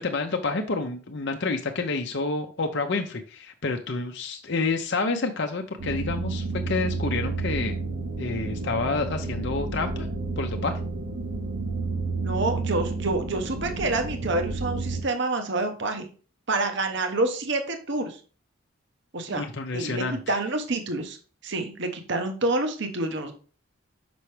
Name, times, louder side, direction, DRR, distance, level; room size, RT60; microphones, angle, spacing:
voice 1, 0.0-7.8 8.2-10.1 10.4-10.8 19.3-20.4, left 3 dB, 55° left, 4 dB, 0.7 m, -29 dB
sound 1, 5.8-15.0, right 3 dB, 75° right, 1.3 m, -30 dB
voice 2, 12.2-16.1 16.5-18.2 19.1-19.5 19.7-21.2 21.4-23.3, right 2 dB, 55° right, 6 dB, 0.9 m, -27 dB
6.1 x 5.7 x 3.3 m, 0.37 s
head